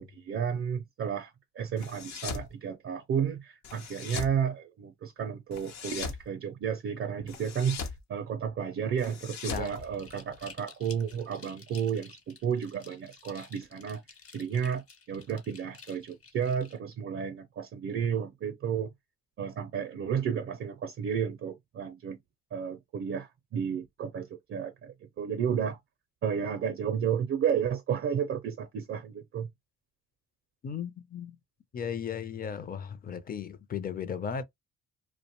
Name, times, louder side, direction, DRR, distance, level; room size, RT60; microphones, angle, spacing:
voice 1, 0.0-14.0 14.3-18.9 19.4-22.2 22.5-25.8 26.2-29.5, right 7 dB, 45° right, 0.4 m, -32 dB
sound 1, 1.8-2.5 3.6-4.4 5.5-6.2 7.3-8.0 9.0-10.5, left 5 dB, 65° left, 0.7 m, -39 dB
sound 2, 9.5-16.8, left 5 dB, 45° left, 1.1 m, -52 dB
voice 2, 30.6-31.4 31.7-34.4, left 7 dB, 30° left, 0.5 m, -36 dB
2.5 x 2.1 x 2.9 m
cardioid pair, 90°, 30 cm